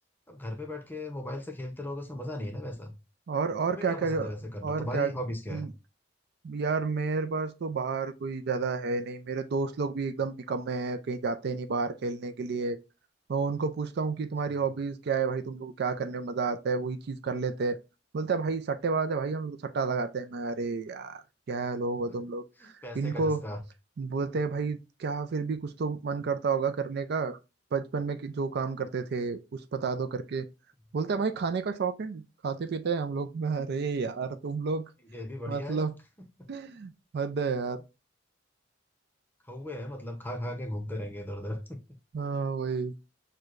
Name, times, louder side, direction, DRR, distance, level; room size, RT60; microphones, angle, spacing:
voice 1, 0.3-2.9 3.7-5.7 14.5-14.6 22.8-23.6 35.1-35.8 39.5-41.8, left 1 dB, 10° left, 0.7 m, -37 dB
voice 2, 3.3-4.3 4.6-5.1 5.5-5.7 6.4-12.8 13.3-17.8 18.1-23.4 24.0-27.4 27.7-30.5 30.9-34.8 35.5-35.9 36.5-37.8 42.1-42.9, right 4 dB, 60° right, 0.4 m, -31 dB
6.2 x 2.2 x 2.4 m
head